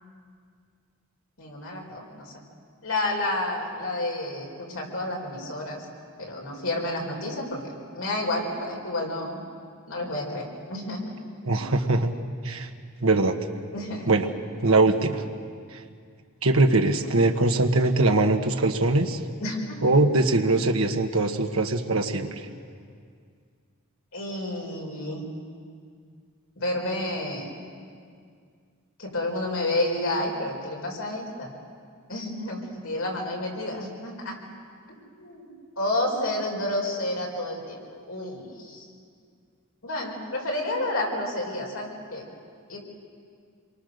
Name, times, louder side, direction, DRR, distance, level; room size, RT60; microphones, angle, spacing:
voice 1, 1.4-2.3 2.8-5.9 6.2-9.4 9.9-11.1 11.5-11.7 13.7-14.1 19.4-19.8 24.1-25.2 26.6-27.5 29.0-31.5 32.1-34.4 35.2-35.5 35.8-37.8 38.1-38.9 39.8-42.2 42.7-42.8, left 1 dB, 75° left, -1 dB, 5.0 m, -30 dB
voice 2, 11.4-12.1 12.4-12.7 13.0-13.4 14.1-14.3 14.6-15.2 16.4-19.2 19.8-22.5, right 2 dB, 70° right, 4 dB, 1.4 m, -22 dB
27.5 x 23.5 x 6.6 m, 2.2 s
head